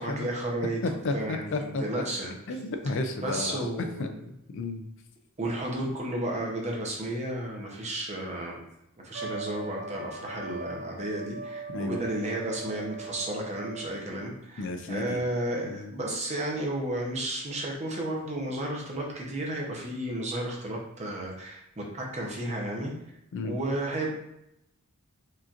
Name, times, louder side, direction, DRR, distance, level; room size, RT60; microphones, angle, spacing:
voice 1, 0.0-0.8 1.1-2.3 3.2-4.2 5.4-8.6 9.0-22.9 23.4-24.1, right 1 dB, 30° right, -1 dB, 0.8 m, -33 dB
voice 2, 0.8-1.8 2.5-4.1 4.5-4.8 11.7-12.0 14.6-15.2 15.7-15.9 23.3-23.6, left 2 dB, 60° left, 6 dB, 0.4 m, -32 dB
Trumpet, 9.1-14.1, right 3 dB, 55° right, 0.4 m, -40 dB
4.9 x 2.9 x 2.5 m, 0.81 s
head